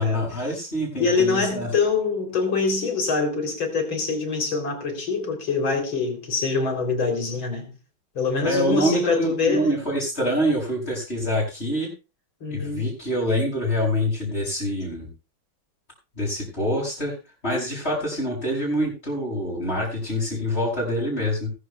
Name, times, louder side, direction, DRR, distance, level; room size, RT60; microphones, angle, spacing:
voice 1, 0.0-1.7 8.4-11.9 12.5-15.1 16.1-17.2 17.4-21.5, equal, 30° left, 6.6 m, -25 dB
voice 2, 1.0-7.7 8.2-9.8 12.4-12.9, left 4 dB, 70° left, 4.2 m, -24 dB
21.0 x 13.0 x 2.3 m
omnidirectional pair, 2.2 m